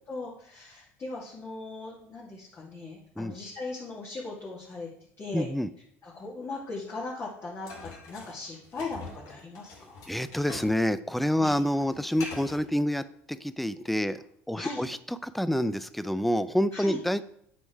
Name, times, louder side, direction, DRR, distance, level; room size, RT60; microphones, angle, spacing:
voice 1, 0.1-4.9 5.2-5.5 6.0-10.2 11.4-11.5 14.5-14.8 16.7-17.0, left 3 dB, 35° left, -7 dB, 2.6 m, -39 dB
voice 2, 5.3-5.7 10.1-14.2 14.5-17.2, equal, ahead, 14 dB, 0.5 m, -28 dB
sound 1, 7.7-10.8 11.1-12.7, left 3 dB, 65° left, 2.9 m, -44 dB
8.2 x 5.3 x 4.7 m, 0.69 s
hypercardioid pair, 80°, 7 cm